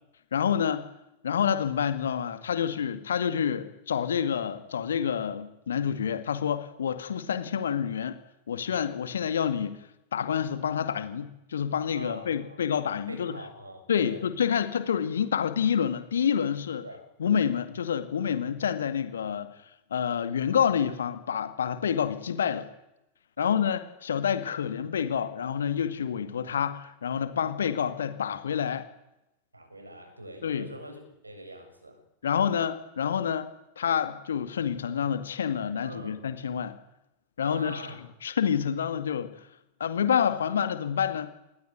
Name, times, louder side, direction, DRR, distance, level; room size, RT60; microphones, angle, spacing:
voice 1, 0.3-0.9 1.2-8.2 8.5-9.8 10.1-13.3 13.9-16.8 17.2-19.5 19.9-22.7 23.4-28.9 30.4-30.7 32.2-33.5 33.8-36.8 37.4-37.8 38.2-39.5 39.8-41.3, left 8 dB, 65° left, 11 dB, 2.1 m, -28 dB
voice 2, 11.9-12.7 13.1-14.2 16.8-17.0 23.4-23.7 29.5-32.0 35.8-36.2 37.4-38.0, right 1 dB, 80° right, 5 dB, 7.4 m, -43 dB
27.0 x 20.5 x 9.3 m, 0.87 s
figure-of-eight pair, 90°, 0 cm